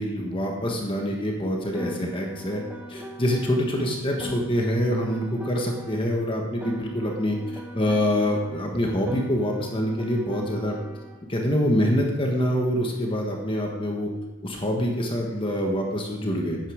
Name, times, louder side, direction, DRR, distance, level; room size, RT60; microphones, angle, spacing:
voice 1, 0.0-2.6 2.9-7.4 7.7-10.8 11.3-14.1 14.4-16.6, equal, 25° left, 0 dB, 1.3 m, -25 dB
Piano, 1.7-6.2 6.6-11.2, equal, 5° right, 1.4 m, -40 dB
11.5 x 9.1 x 5.0 m, 1.2 s
head